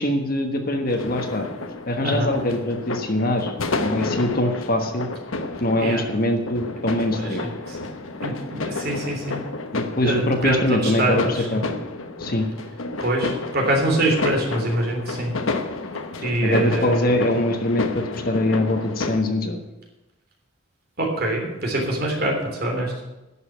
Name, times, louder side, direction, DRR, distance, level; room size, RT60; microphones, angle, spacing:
voice 1, 0.0-1.5 1.9-5.1 5.6-7.5 9.7-11.6 12.2-12.5 16.2-19.6, left 1 dB, 45° left, 5 dB, 1.3 m, -23 dB
sound 1, 0.9-19.2, left 3 dB, 80° left, 1.0 m, -31 dB
voice 2, 2.0-2.3 5.8-6.0 6.9-7.9 8.2-9.4 10.0-11.6 13.0-15.3 16.2-17.3 21.0-23.0, right 1 dB, 50° right, 0 dB, 3.2 m, -24 dB
11.0 x 6.6 x 9.0 m, 1.0 s
head